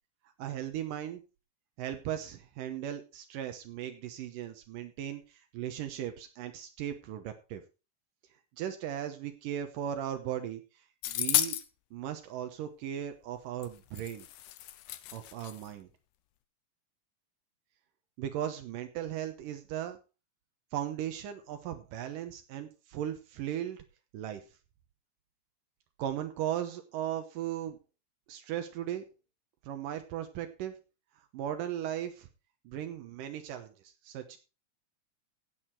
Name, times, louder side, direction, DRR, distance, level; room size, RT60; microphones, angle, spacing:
voice 1, 0.4-1.2 1.8-7.6 8.6-10.6 11.1-11.6 11.9-14.2 15.1-15.9 18.2-20.0 20.7-23.8 24.1-24.4 26.0-27.8 28.3-29.0 29.6-30.7 31.3-32.3 32.7-34.4, right 10 dB, 80° right, 7 dB, 2.7 m, -37 dB
sound 1, 11.0-11.7 13.6-13.7 13.9-15.7, left 13 dB, 75° left, 2.1 m, -32 dB
16.5 x 6.6 x 4.5 m, 0.31 s
omnidirectional pair, 3.8 m